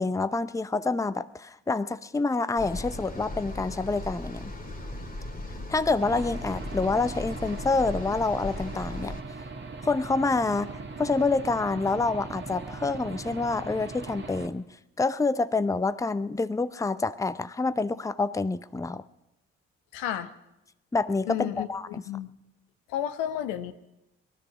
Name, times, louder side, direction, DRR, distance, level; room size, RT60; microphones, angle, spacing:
voice 1, 0.0-4.5 5.7-9.1 9.8-10.7 11.0-14.6 15.0-19.0 20.9-21.8, left 3 dB, 10° left, 14 dB, 0.6 m, -27 dB
sound 1, 2.6-9.2, left 1 dB, 25° left, 2.4 m, -37 dB
Aircraft / Engine, 6.0-14.5, right 3 dB, 35° right, 1.8 m, -40 dB
voice 2, 19.9-20.3 21.3-22.3 22.9-23.7, left 11 dB, 80° left, 10 dB, 0.9 m, -32 dB
19.5 x 12.5 x 5.9 m, 0.92 s
hypercardioid pair, 45°, 32 cm